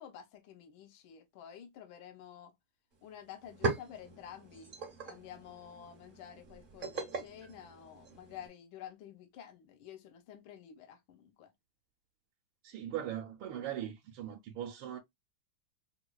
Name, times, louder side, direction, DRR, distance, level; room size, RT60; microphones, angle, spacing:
voice 1, 0.0-2.5 3.0-4.7 5.0-11.5, left 9 dB, 75° left, 1.4 m, -50 dB
sound 1, 2.9-3.0 3.3-8.5, right 3 dB, 50° right, 0.6 m, -40 dB
voice 2, 12.6-15.0, right 11 dB, 75° right, 1.4 m, -40 dB
4.4 x 2.3 x 2.2 m
omnidirectional pair, 2.3 m